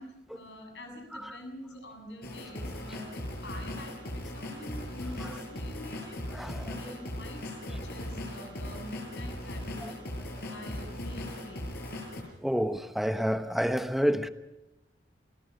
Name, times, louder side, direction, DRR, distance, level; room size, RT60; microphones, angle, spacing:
voice 1, 0.0-10.1 10.4-11.7, left 1 dB, 80° left, 7.4 m, -46 dB
sound 1, 2.2-12.2, left 1 dB, 60° left, 6.0 m, -38 dB
voice 2, 6.3-6.9 9.8-9.9 12.4-14.3, equal, ahead, 1.0 m, -29 dB
29.0 x 19.5 x 5.3 m
head